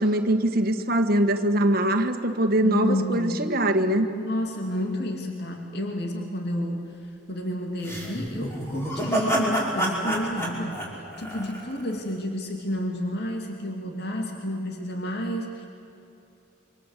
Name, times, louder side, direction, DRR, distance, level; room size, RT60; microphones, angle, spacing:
voice 1, 0.0-4.1, right 1 dB, 50° right, 7 dB, 1.5 m, -22 dB
voice 2, 2.6-3.5 4.1-15.7, equal, 55° left, 2 dB, 2.6 m, -30 dB
sound 1, 7.8-12.0, right 1 dB, 15° left, 5.5 m, -28 dB
28.0 x 26.0 x 8.2 m, 2.8 s
head